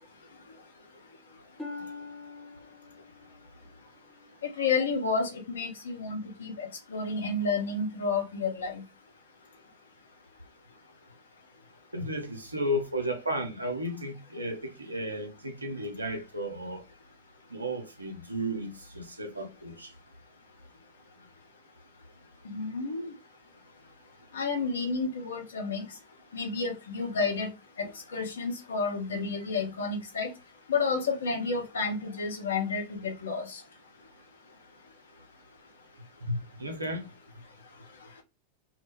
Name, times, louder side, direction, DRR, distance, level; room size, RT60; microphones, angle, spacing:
Harp, 1.6-5.3 5.9-6.3 6.9-7.0, left 3 dB, ahead, 0.8 m, -46 dB
voice 1, 4.6-8.8 22.4-23.1 24.3-25.8 26.3-27.5 27.8-27.9 28.1-30.3 30.7-33.6, left 4 dB, 65° left, 0.6 m, -30 dB
voice 2, 11.9-16.8 17.5-19.9 36.3-37.1, equal, 80° right, 0.6 m, -34 dB
2.0 x 2.0 x 3.1 m
figure-of-eight pair, 90°, 0 cm